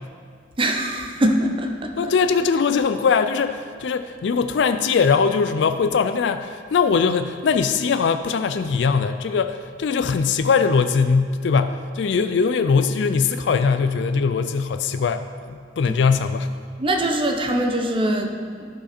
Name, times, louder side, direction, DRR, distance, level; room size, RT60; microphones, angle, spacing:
voice 1, 0.6-1.9 16.8-18.7, right 1 dB, 30° right, 3 dB, 0.7 m, -22 dB
voice 2, 2.0-16.5, left 5 dB, 65° left, 9 dB, 0.4 m, -21 dB
13.5 x 4.8 x 4.3 m, 2.1 s
head